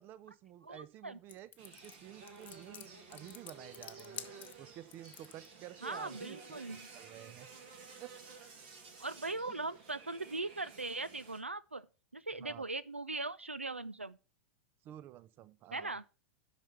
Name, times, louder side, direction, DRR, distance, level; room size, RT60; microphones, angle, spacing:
voice 1, 0.0-4.3 4.6-6.4 6.7-7.5 8.0-8.2 9.5-9.6 12.4-12.7 14.8-16.0, right 12 dB, 35° right, 0.6 m, -51 dB
voice 2, 0.6-1.2 5.8-6.9 9.0-11.9 12.1-14.2 15.7-16.0, right 3 dB, 85° right, 0.4 m, -40 dB
sound 1, 1.3-5.5, left 10 dB, 25° left, 0.9 m, -49 dB
sound 2, 1.6-11.4, right 4 dB, 50° right, 2.0 m, -53 dB
8.9 x 5.8 x 5.8 m
figure-of-eight pair, 90°, 7 cm